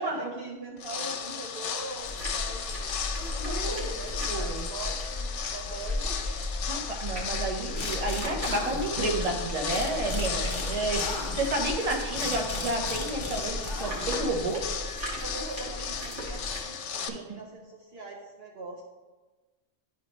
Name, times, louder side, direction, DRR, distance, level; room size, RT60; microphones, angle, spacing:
voice 1, 0.0-6.7 10.3-11.1 15.2-18.8, right 3 dB, 60° right, 0 dB, 1.0 m, -42 dB
sound 1, 0.8-17.1, left 7 dB, 80° left, 0.9 m, -35 dB
sound 2, 2.0-16.6, left 1 dB, 85° right, 2.2 m, -36 dB
voice 2, 3.3-3.9 4.3-4.6 6.7-14.7 17.1-17.2, right 2 dB, 35° right, 0 dB, 1.0 m, -31 dB
sound 3, 7.7-9.3 9.7-14.4, left 3 dB, 55° left, 1.1 m, -38 dB
11.0 x 4.3 x 3.1 m, 1.2 s
omnidirectional pair, 1.2 m